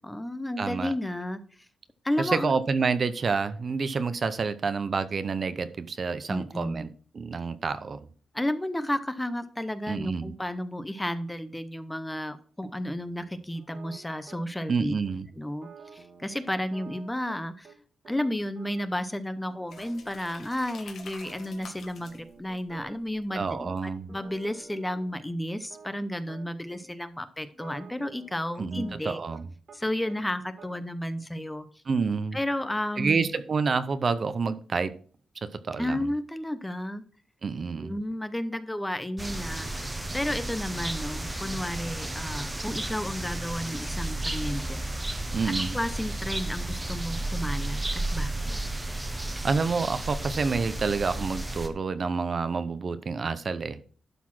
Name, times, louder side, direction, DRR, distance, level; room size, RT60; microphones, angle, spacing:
voice 1, 0.0-1.4 2.0-2.5 6.3-6.9 8.3-14.9 15.4-17.7 18.1-29.2 29.7-31.7 32.3-33.2 35.8-37.0 37.8-39.9 40.1-44.8 45.7-48.6, left 1 dB, 5° left, 11 dB, 0.6 m, -32 dB
voice 2, 0.6-0.9 2.2-8.1 9.9-10.3 14.7-15.3 23.3-24.1 28.6-29.5 31.9-32.4 33.0-34.9 35.4-36.1 37.4-37.9 45.3-45.8 49.4-53.9, right 4 dB, 40° right, 13 dB, 0.6 m, -28 dB
sound 1, 12.6-14.8 15.0-15.2 15.5-17.8 18.0-20.4 20.7-20.8 21.1-21.7 22.0-23.8 24.1-26.8 27.4-29.8 30.1-30.7, right 5 dB, 60° right, 1.6 m, -51 dB
sound 2, 19.7-24.3, left 5 dB, 60° left, 1.7 m, -49 dB
sound 3, 39.2-51.7, right 2 dB, 15° right, 0.9 m, -33 dB
11.5 x 4.2 x 5.9 m, 0.43 s
wide cardioid pair, 155°, 0 cm